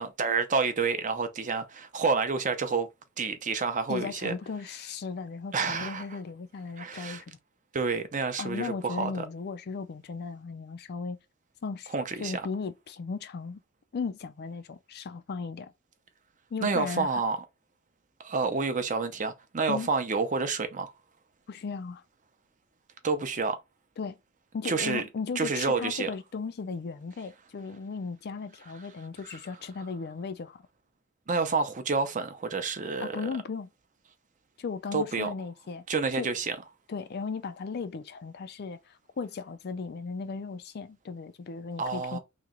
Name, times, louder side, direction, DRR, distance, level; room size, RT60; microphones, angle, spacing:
voice 1, 0.0-2.9 3.2-4.3 5.5-6.0 6.8-7.2 7.7-9.2 11.9-12.4 16.6-17.4 18.2-20.9 23.0-23.6 24.6-25.0 25.4-26.1 31.3-33.2 34.9-35.3 35.9-36.6 41.8-42.2, right 4 dB, 35° right, 0.6 m, -29 dB
voice 2, 3.9-7.4 8.4-11.2 11.6-11.9 12.2-13.6 13.9-15.7 16.5-17.1 19.7-19.9 21.5-22.0 24.0-24.2 24.5-30.6 33.0-33.7 34.6-35.8 36.2-36.3 36.9-42.2, left 5 dB, 50° left, 0.4 m, -36 dB
3.0 x 2.8 x 3.7 m
head